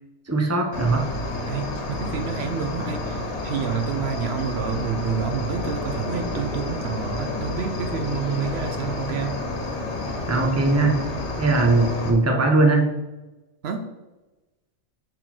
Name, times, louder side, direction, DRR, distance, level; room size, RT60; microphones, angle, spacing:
voice 1, 0.3-1.1 10.3-11.0 11.4-12.9, right 3 dB, 15° right, 2 dB, 0.8 m, -20 dB
Cricket, 0.7-12.1, left 2 dB, 80° left, 1.4 m, -30 dB
voice 2, 1.5-9.4 13.6-13.9, right 6 dB, 70° right, 6 dB, 0.9 m, -29 dB
6.6 x 3.9 x 4.3 m, 1.1 s
omnidirectional pair, 1.1 m